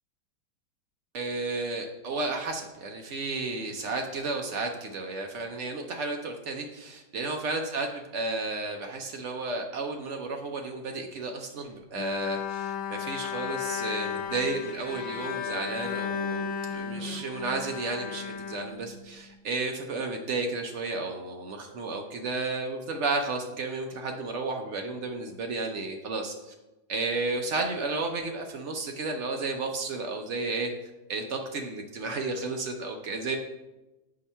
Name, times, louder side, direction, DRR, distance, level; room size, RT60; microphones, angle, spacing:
voice 1, 1.1-26.5 26.9-30.7 31.1-33.4, right 3 dB, 90° right, 3 dB, 0.6 m, -32 dB
Bowed string instrument, 12.0-19.3, left 7 dB, 80° left, 1.3 m, -34 dB
8.5 x 2.9 x 5.4 m, 1.0 s
omnidirectional pair, 2.0 m